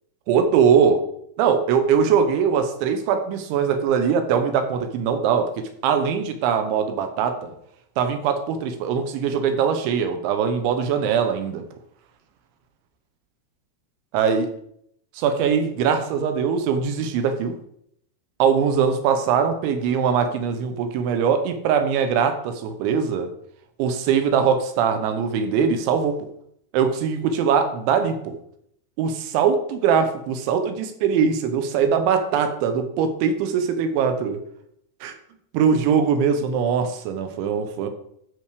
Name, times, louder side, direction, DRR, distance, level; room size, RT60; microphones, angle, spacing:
voice 1, 0.3-1.0 1.4-7.5 8.0-11.6 14.1-14.5 15.2-17.5 18.4-23.3 23.8-26.2 26.7-28.4 29.0-34.4 35.0-35.1 35.5-37.9, right 7 dB, 75° right, 9 dB, 3.1 m, -21 dB
12.5 x 6.5 x 5.0 m, 0.72 s
omnidirectional pair, 6.0 m